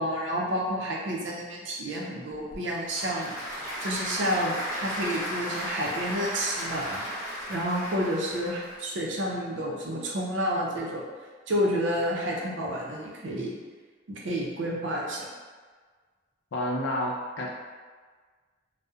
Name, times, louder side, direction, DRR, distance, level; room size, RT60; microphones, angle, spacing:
voice 1, 0.0-3.4 3.8-7.0 7.5-11.0 11.5-13.5 14.1-15.3, equal, 70° right, -3 dB, 0.5 m, -30 dB
Applause / Crowd, 2.3-8.8, equal, 15° right, 0.8 m, -35 dB
voice 2, 16.5-17.5, left 1 dB, 75° left, -2 dB, 0.4 m, -29 dB
2.7 x 2.0 x 2.3 m, 1.5 s
head